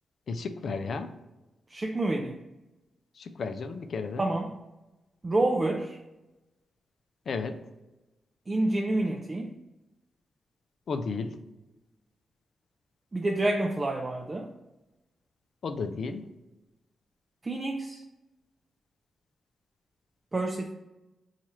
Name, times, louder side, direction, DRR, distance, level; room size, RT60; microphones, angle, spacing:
voice 1, 0.3-1.1 3.2-4.3 7.3-7.6 10.9-11.3 15.6-16.2, left 4 dB, 65° left, 9 dB, 0.3 m, -33 dB
voice 2, 1.7-2.4 4.2-4.5 5.2-6.0 8.5-9.6 13.1-14.5 17.4-18.0 20.3-20.7, right 2 dB, 35° right, 2 dB, 0.3 m, -28 dB
2.9 x 2.4 x 4.3 m, 1.0 s
supercardioid pair, 40°, 0 cm